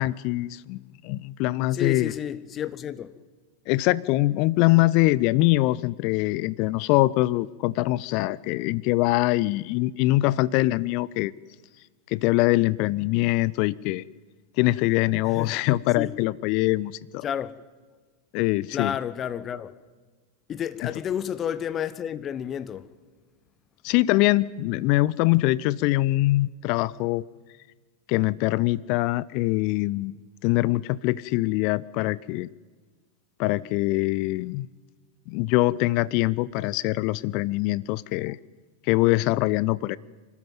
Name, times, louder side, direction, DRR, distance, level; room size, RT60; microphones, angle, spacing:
voice 1, 0.0-2.1 3.7-11.3 12.1-14.0 14.6-17.2 18.3-19.0 20.8-20.9 23.8-27.2 28.1-30.1 30.4-32.5 33.4-34.7 35.3-38.4 38.9-40.0, left 19 dB, 45° left, 0.5 m, -23 dB
voice 2, 1.7-3.1 15.2-15.5 16.0-16.1 17.2-17.6 18.7-19.8 20.5-22.9, left 9 dB, 25° left, 1.0 m, -31 dB
25.5 x 13.0 x 9.3 m
figure-of-eight pair, 90°, 0 cm